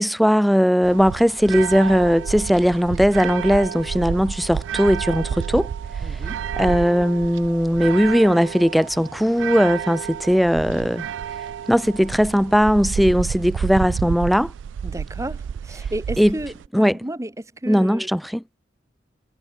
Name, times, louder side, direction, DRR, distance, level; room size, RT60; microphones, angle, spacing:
voice 1, 0.0-5.7 6.6-11.0 11.7-14.5 16.2-16.3 16.7-16.9 17.7-18.4, equal, ahead, 0.4 m, -18 dB
sound 1, 0.8-16.7, right 7 dB, 75° right, 0.3 m, -30 dB
voice 2, 6.0-6.5 14.8-18.1, right 1 dB, 15° right, 1.0 m, -33 dB
head